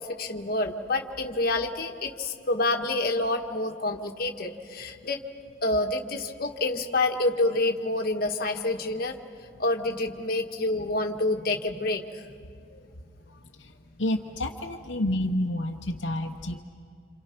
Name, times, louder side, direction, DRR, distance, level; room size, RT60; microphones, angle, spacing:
voice 1, 0.0-5.2 5.6-9.2 9.6-12.3, left 2 dB, 50° left, 3 dB, 1.5 m, -28 dB
voice 2, 14.0-16.6, left 1 dB, 70° left, 2 dB, 1.1 m, -29 dB
28.0 x 28.0 x 6.0 m, 2.3 s
head